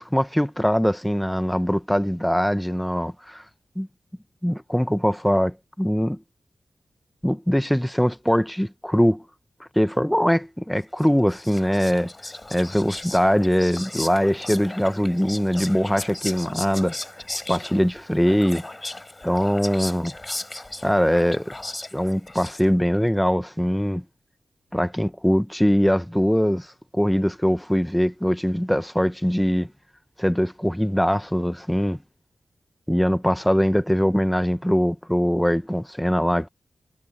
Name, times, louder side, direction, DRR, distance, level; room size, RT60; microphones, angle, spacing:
voice 1, 0.0-3.4 3.8-3.9 4.4-6.2 7.2-9.2 9.6-12.1 12.5-17.0 17.5-18.6 19.2-20.1 20.8-21.5 21.9-24.0 24.7-29.7 30.2-32.0 32.9-36.5, equal, 5° left, 1.0 m, -22 dB
Whispering, 11.0-22.9, left 2 dB, 20° left, 7.3 m, -36 dB
wide cardioid pair, 105°, 0 cm